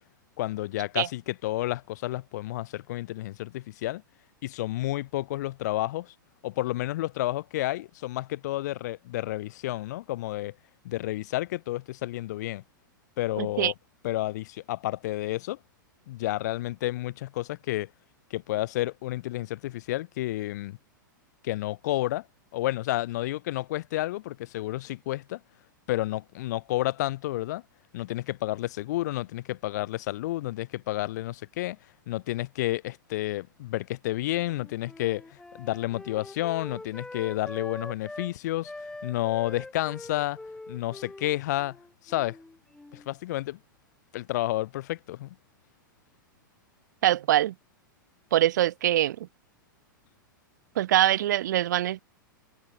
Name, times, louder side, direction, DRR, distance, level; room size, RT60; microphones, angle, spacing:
voice 1, 0.4-4.0 4.4-6.1 6.4-10.5 10.8-12.6 13.2-13.7 14.0-15.6 16.1-17.9 18.3-20.8 21.4-22.3 22.5-25.4 25.9-27.6 27.9-31.8 32.1-38.7 39.0-40.4 40.7-41.8 42.0-42.4 42.9-43.6 44.1-45.4, left 16 dB, 55° left, 3.0 m, -30 dB
voice 2, 13.4-13.7 47.0-47.5 48.3-49.3 50.8-52.0, right 13 dB, 60° right, 1.8 m, -23 dB
Wind instrument woodwind instrument, 34.3-38.3 38.6-43.1, left 2 dB, 5° left, 3.0 m, -43 dB
figure-of-eight pair, 100°, 11 cm